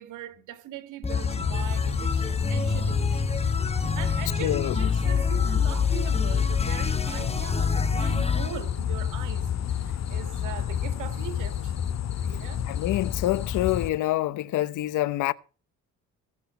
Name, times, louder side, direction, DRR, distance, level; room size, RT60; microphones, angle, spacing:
voice 1, 0.0-12.9, right 12 dB, 90° right, 2.2 m, -41 dB
sound 1, 1.0-8.6, left 4 dB, 20° left, 1.4 m, -27 dB
sound 2, 1.1-13.9, left 9 dB, 60° left, 2.0 m, -30 dB
voice 2, 4.4-4.7 12.7-15.3, left 15 dB, 85° left, 0.9 m, -26 dB
19.0 x 6.4 x 7.0 m
cardioid pair, 90°, 30 cm